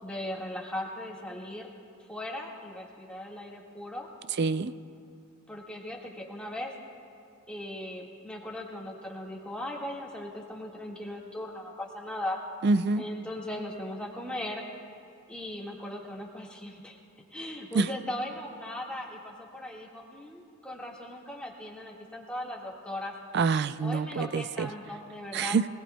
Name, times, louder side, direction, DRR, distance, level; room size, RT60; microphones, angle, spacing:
voice 1, 0.0-1.7 2.1-4.1 5.5-6.7 7.5-12.4 13.0-14.6 15.3-17.0 17.3-23.1 23.8-25.6, left 1 dB, 5° left, -3 dB, 1.7 m, -38 dB
voice 2, 4.4-4.7 12.6-13.0 17.7-17.9 23.3-24.7 25.3-25.7, right 4 dB, 50° right, 13 dB, 0.4 m, -26 dB
25.0 x 18.5 x 2.2 m, 2.8 s
head